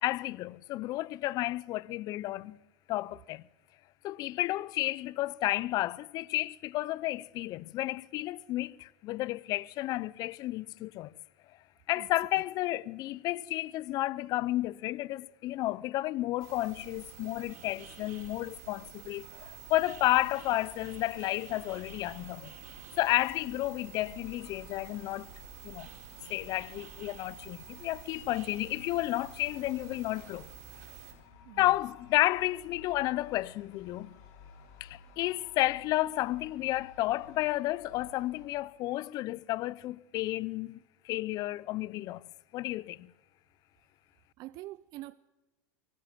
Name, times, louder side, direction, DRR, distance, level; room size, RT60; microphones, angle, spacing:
voice 1, 0.0-2.6 2.9-3.4 4.0-11.1 11.9-22.5 23.0-25.3 25.6-25.9 26.3-30.5 31.6-34.2 34.8-40.8 41.0-42.2 42.5-43.1, left 17 dB, 50° left, 0.6 m, -32 dB
sound 1, 16.4-31.1, right 10 dB, 75° right, 4.7 m, -49 dB
sound 2, 19.2-38.5, left 5 dB, 75° left, 5.3 m, -56 dB
voice 2, 44.4-45.1, right 17 dB, 50° right, 0.6 m, -44 dB
24.0 x 14.5 x 7.5 m
supercardioid pair, 115°, 9 cm